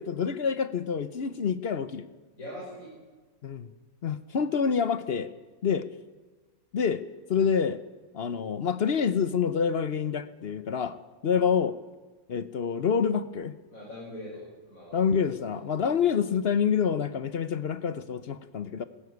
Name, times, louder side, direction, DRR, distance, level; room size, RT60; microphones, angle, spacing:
voice 1, 0.0-2.1 3.4-3.7 4.0-5.3 5.6-5.9 6.7-7.0 7.3-7.8 8.1-11.0 11.2-11.8 12.3-13.5 14.9-18.8, left 6 dB, 55° left, 13 dB, 0.9 m, -27 dB
voice 2, 2.4-2.9 11.3-11.5 13.7-15.1 15.4-15.5, left 1 dB, 80° left, -5 dB, 5.8 m, -42 dB
18.0 x 15.5 x 9.5 m, 1.3 s
omnidirectional pair, 1.4 m